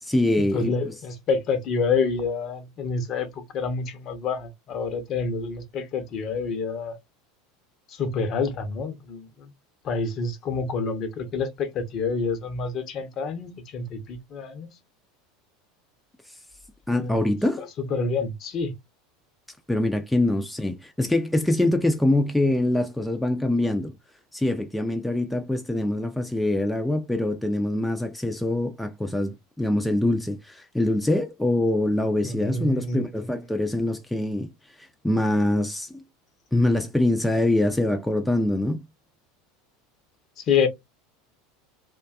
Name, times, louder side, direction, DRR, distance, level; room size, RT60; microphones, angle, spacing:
voice 1, 0.0-0.9 16.9-17.6 19.7-23.9 24.3-34.5 34.8-36.0 36.5-38.8, left 1 dB, 5° left, 0.4 m, -24 dB
voice 2, 0.5-7.0 7.9-9.5 9.8-14.7 16.9-17.2 17.6-18.7 32.2-33.1 40.4-40.7, left 4 dB, 45° left, 0.7 m, -28 dB
2.5 x 2.3 x 2.3 m
hypercardioid pair, 80°, 0 cm